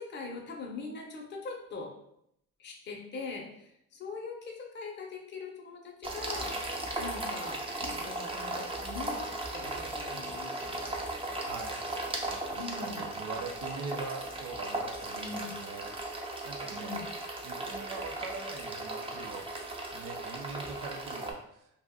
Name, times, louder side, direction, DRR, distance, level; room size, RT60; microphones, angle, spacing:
voice 1, 0.0-1.9 2.6-6.6 7.0-11.0 12.6-13.1 15.2-15.5 16.7-17.1, left 4 dB, 35° left, 1 dB, 0.6 m, -42 dB
sound 1, 6.0-21.3, right 2 dB, 20° right, 0.5 m, -37 dB
voice 2, 11.4-11.8 12.4-15.9 16.4-17.0 17.4-19.7 19.9-21.7, right 4 dB, 85° right, 4 dB, 0.5 m, -42 dB
2.4 x 2.1 x 3.5 m, 0.75 s
cardioid pair, 90°, 30 cm